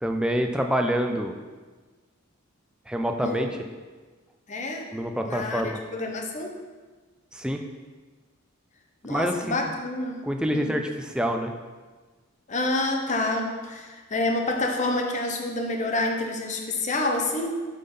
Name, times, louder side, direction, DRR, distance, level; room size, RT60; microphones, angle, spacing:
voice 1, 0.0-1.3 2.9-3.5 4.9-5.8 7.3-7.6 9.1-9.5 10.2-11.5, equal, 5° right, 4 dB, 0.4 m, -26 dB
voice 2, 4.5-4.9 5.3-6.6 9.0-10.2 10.5-10.7 12.5-17.5, left 2 dB, 35° left, 2 dB, 0.8 m, -28 dB
7.5 x 3.8 x 5.4 m, 1.4 s
head